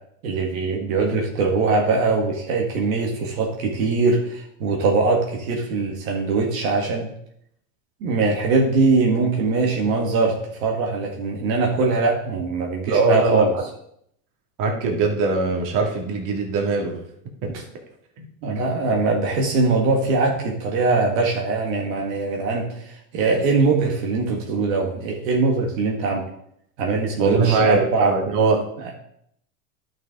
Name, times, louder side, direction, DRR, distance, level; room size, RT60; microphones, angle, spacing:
voice 1, 0.2-7.1 8.0-13.6 18.4-26.2 26.8-28.2 28.8-28.9, right 3 dB, 70° right, 0 dB, 1.9 m, -22 dB
voice 2, 12.9-13.5 14.6-16.9 17.4-17.5 18.2-18.3 27.2-28.6, right 4 dB, 50° right, 1 dB, 2.2 m, -21 dB
11.0 x 6.2 x 3.7 m, 0.72 s
hypercardioid pair, 105°, 42 cm